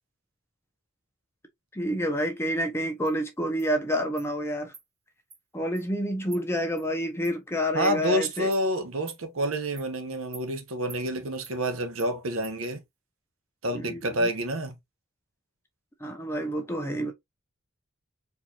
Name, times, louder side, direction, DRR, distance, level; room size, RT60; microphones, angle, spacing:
voice 1, 1.7-4.7 5.5-8.5 13.7-14.3 16.0-17.1, equal, 10° left, 0.7 m, -28 dB
Insect, 3.1-3.2 3.6-3.7 4.2-4.3 4.7-4.8 5.3-5.4 5.7-5.9 6.3-6.4 6.8-6.9 7.2-7.3 7.8-8.0 8.5-8.6 9.1-9.2 9.8-9.9 10.3-10.5 10.9-11.0 11.4-11.6 12.0-12.1 12.4-12.5, right 5 dB, 25° right, 1.6 m, -47 dB
voice 2, 7.7-12.8 13.6-14.7, right 1 dB, 70° right, 0.9 m, -28 dB
4.4 x 2.8 x 2.4 m
head